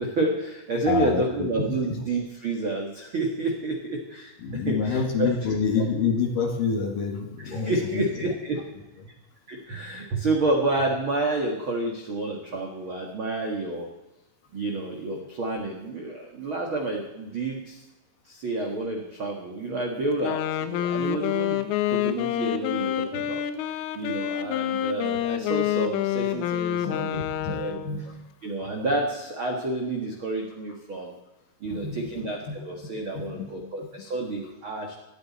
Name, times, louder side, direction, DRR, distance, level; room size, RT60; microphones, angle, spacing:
voice 1, 0.0-5.6 7.4-8.6 9.5-13.9 14.5-17.8 18.3-27.8 28.4-31.1 31.6-34.9, right 2 dB, 85° right, 0 dB, 1.1 m, -29 dB
voice 2, 0.9-1.7 4.4-8.0 26.9-27.5 27.8-28.1 31.7-32.1 32.5-32.6 33.1-33.5, left 5 dB, 55° left, 3 dB, 3.0 m, -27 dB
Wind instrument woodwind instrument, 20.1-28.0, left 11 dB, 90° left, 3.5 m, -27 dB
19.5 x 14.0 x 4.3 m, 1.0 s
omnidirectional pair, 5.6 m